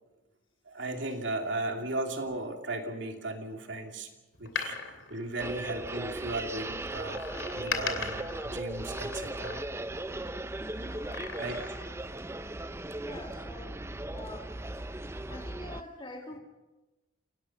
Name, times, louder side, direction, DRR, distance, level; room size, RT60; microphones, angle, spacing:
voice 1, 0.7-4.1 4.4-4.8 5.1-7.2 7.5-9.6 10.7-11.0 11.4-11.7, right 2 dB, 65° right, 4 dB, 2.6 m, -36 dB
Door, 4.3-6.2 7.1-10.0 10.9-12.0 12.4-12.5, left 6 dB, 70° left, 2.8 m, -39 dB
sound 1, 5.4-15.8, right 1 dB, 15° right, 0.6 m, -38 dB
voice 2, 13.0-14.7 15.3-16.4, left 1 dB, 25° left, 3 dB, 2.3 m, -46 dB
28.0 x 17.5 x 5.8 m, 1.1 s
head